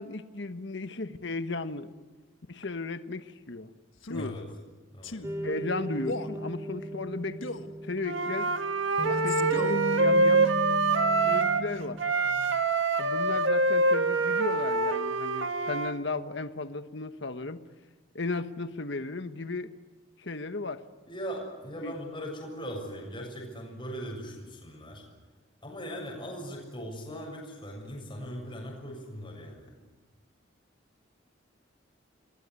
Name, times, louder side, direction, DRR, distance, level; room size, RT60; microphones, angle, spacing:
voice 1, 0.0-1.9 2.5-3.7 4.1-4.4 5.4-7.4 7.8-8.5 9.2-10.6 11.2-12.0 13.0-17.6 18.1-19.7 20.2-20.8 21.8-21.9, left 3 dB, 60° left, 10 dB, 1.3 m, -35 dB
Male speech man speaking, 4.0-4.3 5.0-5.3 6.0-6.4 7.4-7.7 9.0-9.8, left 2 dB, 80° left, 1.5 m, -37 dB
voice 2, 4.1-4.4 4.9-5.2 21.1-25.0 25.6-29.7, equal, 25° left, -1 dB, 7.2 m, -39 dB
sound 1, 5.2-12.6, right 1 dB, 15° right, 3.5 m, -37 dB
Wind instrument woodwind instrument, 8.0-11.7 12.0-15.9, right 3 dB, 75° right, 1.7 m, -25 dB
29.5 x 21.0 x 9.7 m, 1.2 s
head